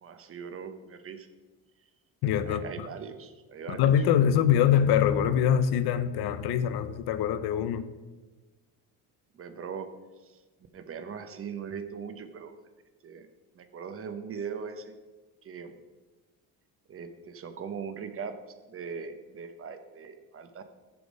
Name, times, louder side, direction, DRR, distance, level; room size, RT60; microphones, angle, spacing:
voice 1, 0.0-1.3 2.5-3.9 9.3-9.9 10.2-10.4 10.7-12.6 13.0-13.3 13.6-14.9 15.4-15.8 16.9-18.3 18.7-20.6, right 6 dB, 35° right, 9 dB, 0.7 m, -40 dB
voice 2, 2.2-2.9 3.7-7.8, left 9 dB, 85° left, 12 dB, 0.7 m, -24 dB
6.9 x 6.9 x 5.2 m, 1.2 s
cardioid pair, 145°, 37 cm